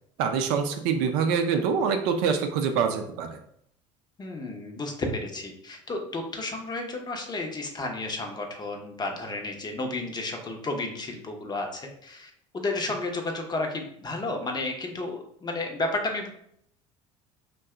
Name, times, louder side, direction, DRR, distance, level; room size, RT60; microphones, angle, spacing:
voice 1, 0.2-3.4, right 6 dB, 65° right, 6 dB, 0.4 m, -25 dB
voice 2, 4.2-16.3, left 2 dB, 25° left, 3 dB, 0.7 m, -32 dB
2.7 x 2.2 x 3.5 m, 0.70 s
hypercardioid pair, 70°, 17 cm